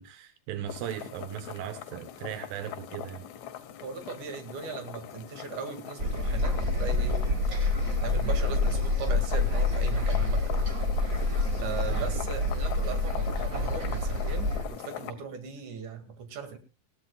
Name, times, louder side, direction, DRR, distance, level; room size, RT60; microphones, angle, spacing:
voice 1, 0.0-3.3 11.9-12.1, right 10 dB, 85° right, 10 dB, 2.7 m, -38 dB
sound 1, 0.7-15.1, left 10 dB, 65° left, 2.1 m, -41 dB
voice 2, 3.8-7.5 8.0-10.7 11.0-11.3 11.6-16.6, right 6 dB, 65° right, 7 dB, 3.5 m, -39 dB
sound 2, 6.0-14.6, left 2 dB, 35° right, 1.4 m, -27 dB
20.5 x 15.5 x 2.3 m, 0.28 s
omnidirectional pair, 4.0 m